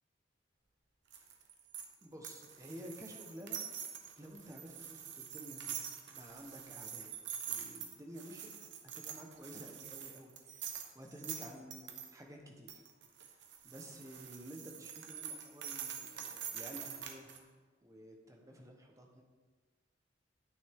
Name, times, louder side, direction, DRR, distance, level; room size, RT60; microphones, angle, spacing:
sound 1, 1.1-12.1 12.7-17.4, right 8 dB, 70° right, 1.0 m, -45 dB
voice 1, 2.0-3.6 4.2-7.1 7.5-8.5 8.8-12.8 13.2-17.3 17.8-19.2, equal, 15° right, 2 dB, 1.1 m, -52 dB
9.9 x 8.7 x 3.6 m, 1.4 s
head